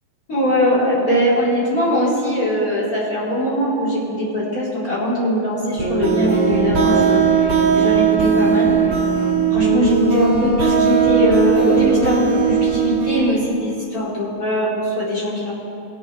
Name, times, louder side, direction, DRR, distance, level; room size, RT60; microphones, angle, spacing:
voice 1, 0.3-8.9 9.5-15.5, equal, 25° left, -9 dB, 2.3 m, -21 dB
sound 1, 5.8-13.3, right 6 dB, 50° right, 4.1 m, -18 dB
19.0 x 7.5 x 3.4 m, 2.7 s
omnidirectional pair, 4.8 m